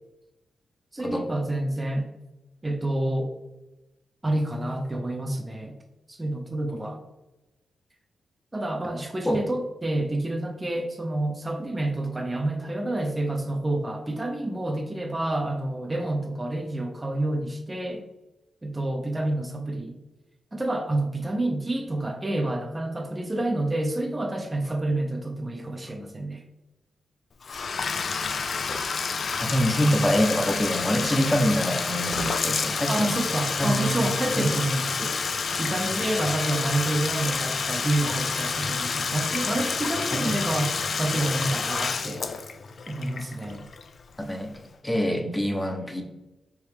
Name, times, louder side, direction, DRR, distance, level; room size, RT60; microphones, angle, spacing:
voice 1, 0.9-2.1 2.6-3.3 4.2-5.8 6.1-7.0 8.5-18.0 18.6-20.0 20.5-26.4 32.9-35.2 35.6-42.2 42.9-43.7, right 1 dB, 20° right, 3 dB, 0.6 m, -28 dB
Bathtub (filling or washing), 27.4-44.1, left 5 dB, 60° left, 0.3 m, -29 dB
voice 2, 29.4-33.2 33.6-34.6 40.1-40.2 44.2-44.5 44.8-46.0, equal, 15° left, 2 dB, 0.8 m, -25 dB
4.7 x 3.1 x 3.4 m, 1.0 s
cardioid pair, 70°, 0 cm